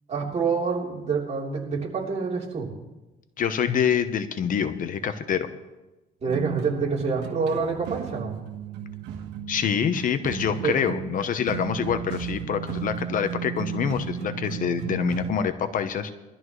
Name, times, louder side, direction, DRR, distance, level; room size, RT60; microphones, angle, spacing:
voice 1, 0.1-2.7 6.2-8.4 10.6-10.8, right 5 dB, 40° right, -2 dB, 3.5 m, -27 dB
voice 2, 3.4-5.5 9.5-16.1, left 7 dB, 55° left, 10 dB, 0.9 m, -26 dB
sound 1, 6.3-15.3, right 8 dB, 90° right, 1.4 m, -34 dB
20.0 x 13.0 x 3.2 m, 1.0 s
cardioid pair, 110°, 17 cm